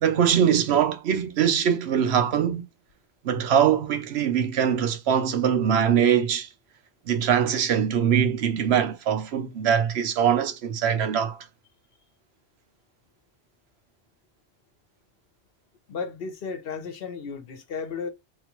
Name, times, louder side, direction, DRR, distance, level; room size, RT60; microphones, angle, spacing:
voice 1, 0.0-2.6 3.2-6.5 7.1-11.4, right 8 dB, 85° right, 0.9 m, -22 dB
voice 2, 15.9-18.1, left 5 dB, 65° left, 0.9 m, -34 dB
3.8 x 2.4 x 2.9 m
omnidirectional pair, 1.1 m